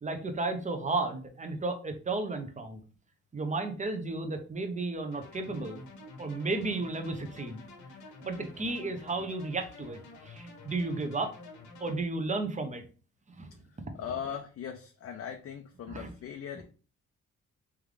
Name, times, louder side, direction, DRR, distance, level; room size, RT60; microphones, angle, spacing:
voice 1, 0.0-2.8 3.3-5.8 6.2-7.6 8.2-11.3 11.8-12.8 13.3-13.5 15.9-16.1, right 3 dB, 25° right, 6 dB, 0.8 m, -33 dB
sound 1, 5.1-12.0, left 2 dB, 80° left, 1.2 m, -49 dB
voice 2, 13.9-16.6, left 8 dB, 50° left, 4 dB, 0.6 m, -39 dB
3.6 x 3.5 x 3.3 m, 0.38 s
cardioid pair, 90°, 30 cm